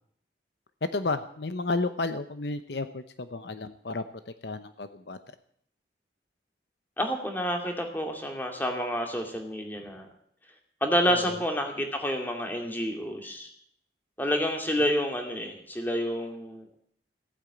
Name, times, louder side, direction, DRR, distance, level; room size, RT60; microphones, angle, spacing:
voice 1, 0.9-4.0 4.4-5.2 11.1-11.4, left 3 dB, 65° left, 10 dB, 0.8 m, -32 dB
voice 2, 7.0-10.1 10.8-13.5 14.2-16.6, equal, 10° left, 3 dB, 2.3 m, -29 dB
16.0 x 9.0 x 8.5 m, 0.66 s
head